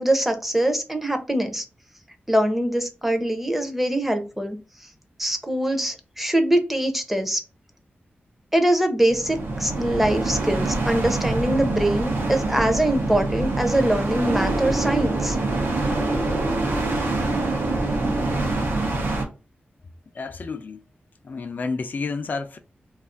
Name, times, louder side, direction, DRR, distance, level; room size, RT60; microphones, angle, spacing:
voice 1, 0.0-1.6 2.3-4.6 5.2-7.4 8.5-15.4, right 1 dB, 5° right, 0.5 m, -23 dB
sound 1, 9.1-19.3, right 2 dB, 90° right, 0.7 m, -25 dB
voice 2, 20.1-20.9 21.2-22.6, left 4 dB, 50° left, 0.3 m, -30 dB
2.4 x 2.4 x 3.6 m
wide cardioid pair, 135°, 4 cm